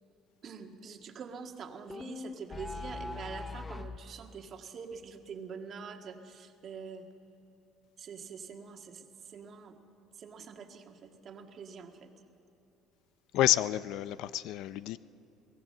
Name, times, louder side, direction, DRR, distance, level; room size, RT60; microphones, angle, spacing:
voice 1, 0.4-7.1 8.0-9.8 10.1-12.1, right 5 dB, 45° right, 4 dB, 1.8 m, -45 dB
sound 1, 1.9-4.0, left 3 dB, 15° left, 0.6 m, -40 dB
voice 2, 13.3-15.0, left 14 dB, 70° left, 16 dB, 0.4 m, -29 dB
23.5 x 16.5 x 7.6 m, 2.8 s
cardioid pair, 125°, 0 cm